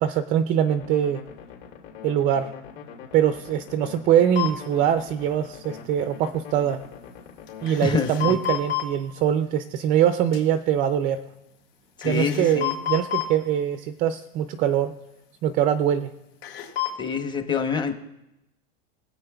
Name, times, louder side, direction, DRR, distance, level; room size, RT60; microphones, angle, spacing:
voice 1, 0.0-1.2 2.0-2.5 3.1-6.8 7.6-11.2 12.0-14.9 15.4-16.1, right 10 dB, 25° right, 10 dB, 0.4 m, -23 dB
sound 1, 0.7-8.0, left 7 dB, 55° left, 3.1 m, -43 dB
sound 2, 4.4-4.5 7.5-8.8 10.3-10.4 12.0-13.3 16.4-16.9, left 14 dB, 80° left, 3.8 m, -28 dB
voice 2, 7.8-8.4 12.0-12.7 17.0-17.9, left 5 dB, 15° left, 7 dB, 0.8 m, -26 dB
21.0 x 8.4 x 2.3 m, 0.91 s
supercardioid pair, 145°, 32 cm